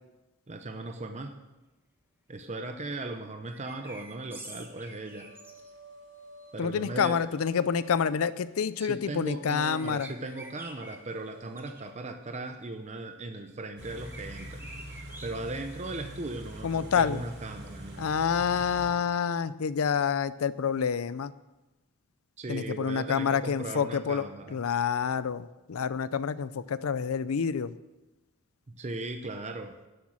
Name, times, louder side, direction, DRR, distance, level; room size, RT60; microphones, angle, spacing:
voice 1, 0.5-1.4 2.3-5.3 6.5-7.2 8.8-18.1 22.4-24.6 28.7-29.7, right 2 dB, 30° right, 6 dB, 0.7 m, -38 dB
sound 1, 3.5-5.7 9.6-11.0 11.6-11.8 13.9-15.3, right 1 dB, 10° right, 1.3 m, -47 dB
sound 2, 4.4-11.9, right 1 dB, 75° right, 4.0 m, -54 dB
voice 2, 6.6-10.1 16.6-17.2 18.0-21.3 22.5-27.8, left 6 dB, 70° left, 16 dB, 0.5 m, -28 dB
Car / Idling, 13.8-18.9, equal, 50° right, 2.9 m, -43 dB
11.0 x 8.1 x 7.3 m, 1.1 s
head